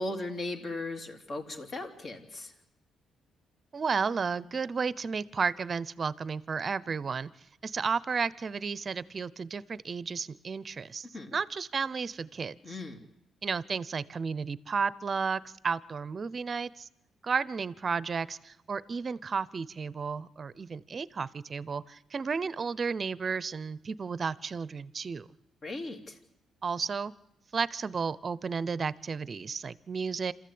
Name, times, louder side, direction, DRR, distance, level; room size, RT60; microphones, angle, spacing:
voice 1, 0.0-2.5 11.1-11.3 12.6-13.0 25.6-26.2, left 2 dB, 45° left, 4 dB, 3.0 m, -37 dB
voice 2, 3.7-7.3 7.6-12.6 13.4-16.9 17.2-25.3 26.6-27.1 27.5-30.3, right 5 dB, 40° right, 19 dB, 0.7 m, -33 dB
27.0 x 14.0 x 8.7 m, 0.91 s
cardioid pair, 90°, 0 cm